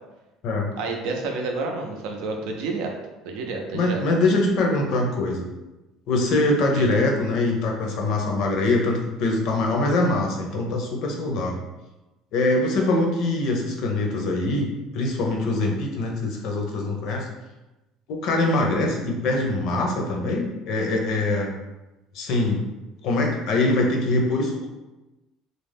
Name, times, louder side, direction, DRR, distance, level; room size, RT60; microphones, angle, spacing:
voice 1, 0.8-2.9 3.2-4.0 6.8-6.9, right 3 dB, 75° right, 3 dB, 0.5 m, -29 dB
voice 2, 3.7-5.5 6.1-11.6 12.3-17.3 18.1-21.5 22.1-22.6 23.0-24.7, left 2 dB, 60° left, 0 dB, 0.6 m, -23 dB
2.4 x 2.1 x 3.3 m, 1.0 s
cardioid pair, 145°, 0 cm